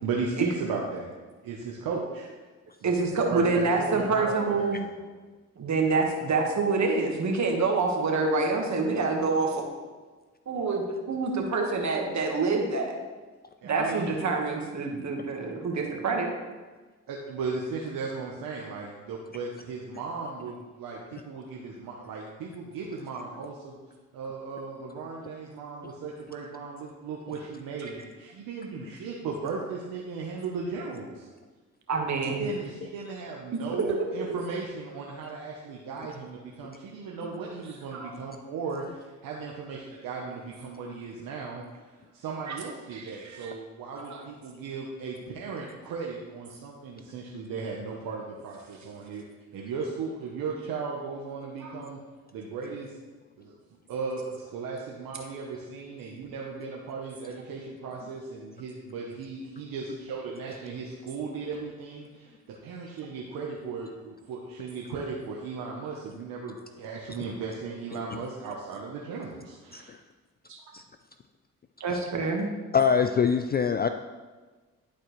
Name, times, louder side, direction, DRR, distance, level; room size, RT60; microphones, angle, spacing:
voice 1, 0.0-1.1 1.4-2.3 2.8-4.7 13.6-14.2 17.1-23.8 24.1-31.3 32.4-41.6 42.1-49.2 49.5-52.0 52.3-53.0 53.4-53.6 53.9-69.9, right 4 dB, 80° right, -2 dB, 0.9 m, -36 dB
voice 2, 2.8-4.8 5.6-9.6 10.5-12.9 13.6-16.3 31.9-32.4 33.9-34.3 37.9-38.1 42.5-42.6 42.9-43.5 44.0-44.2 51.6-51.7 70.5-70.6 71.8-72.5, right 3 dB, 55° right, 1 dB, 1.6 m, -27 dB
voice 3, 72.7-73.9, left 6 dB, 30° left, 7 dB, 0.4 m, -25 dB
11.5 x 4.3 x 3.2 m, 1.3 s
supercardioid pair, 60°, 34 cm